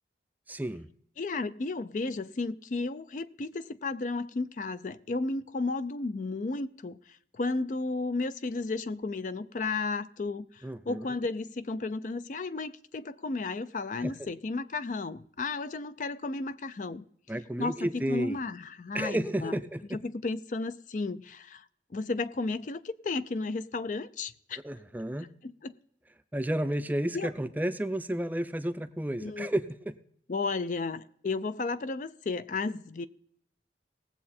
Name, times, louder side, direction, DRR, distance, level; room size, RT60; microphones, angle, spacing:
voice 1, 0.5-0.9 10.6-11.1 14.0-14.1 17.3-18.4 18.9-20.0 24.6-25.3 26.3-30.0, right 1 dB, 10° right, 0.5 m, -32 dB
voice 2, 1.2-17.0 17.6-19.5 20.0-21.6 21.9-24.6 25.4-25.7 27.1-27.3 29.2-29.5 30.3-33.1, left 3 dB, 45° left, 0.4 m, -33 dB
19.0 x 7.5 x 4.3 m
head